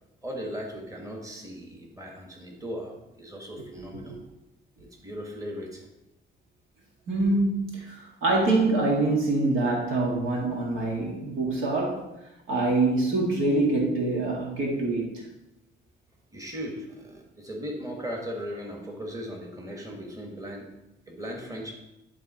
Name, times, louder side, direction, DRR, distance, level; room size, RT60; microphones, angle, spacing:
voice 1, 0.2-4.2 4.8-5.9 16.3-20.7 21.1-21.7, equal, 15° right, 0 dB, 1.6 m, -37 dB
voice 2, 7.1-12.1 12.5-15.1, right 2 dB, 80° right, -2 dB, 2.0 m, -25 dB
11.0 x 3.7 x 4.3 m, 0.92 s
cardioid pair, 90°, 20 cm